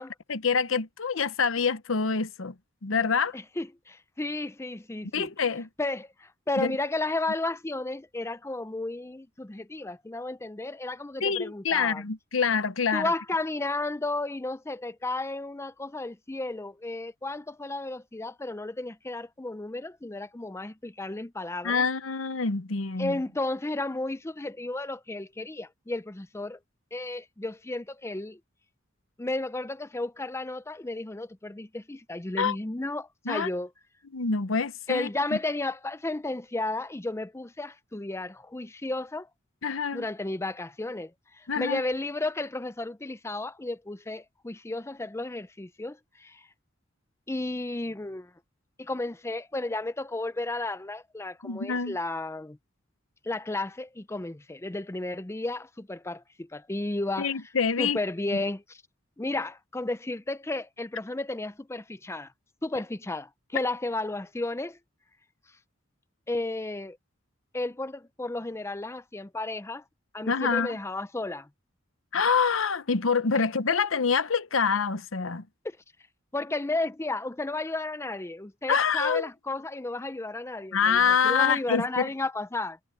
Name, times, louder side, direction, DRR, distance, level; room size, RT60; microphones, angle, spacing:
voice 1, 0.3-2.5 2.8-3.4 5.1-5.7 6.6-6.7 11.2-13.1 21.6-23.2 32.4-32.6 33.3-33.5 34.1-35.1 39.6-40.1 41.5-41.8 51.4-52.0 57.2-58.0 58.3-58.4 70.3-70.8 72.1-75.5 78.7-79.3 80.7-82.0, left 5 dB, 90° left, 0.9 m, -26 dB
voice 2, 3.3-5.3 5.8-12.0 12.9-21.9 23.0-26.6 26.9-28.4 29.2-33.7 34.9-39.3 39.9-46.5 47.3-48.3 48.8-52.6 53.2-57.3 57.8-58.8 59.2-62.3 62.6-64.8 66.3-67.0 67.5-69.8 70.1-71.5 75.6-75.8 76.3-82.8, left 2 dB, 15° left, 0.5 m, -33 dB
head